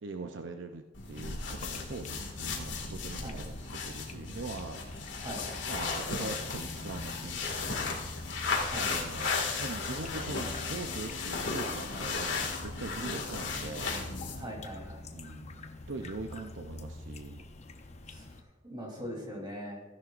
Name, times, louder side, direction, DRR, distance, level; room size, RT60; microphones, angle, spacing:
voice 1, 0.0-5.1 5.7-8.1 8.8-14.0 15.1-17.5 19.0-19.3, right 3 dB, 75° right, 5 dB, 0.7 m, -42 dB
sound 1, 0.9-14.5, left 4 dB, 70° left, 2.2 m, -35 dB
sound 2, 1.1-18.4, left 2 dB, 35° left, 0.8 m, -45 dB
voice 2, 14.4-15.0 18.1-18.4 18.6-19.8, equal, 25° right, -1 dB, 3.4 m, -41 dB
15.5 x 11.0 x 2.6 m, 1.2 s
head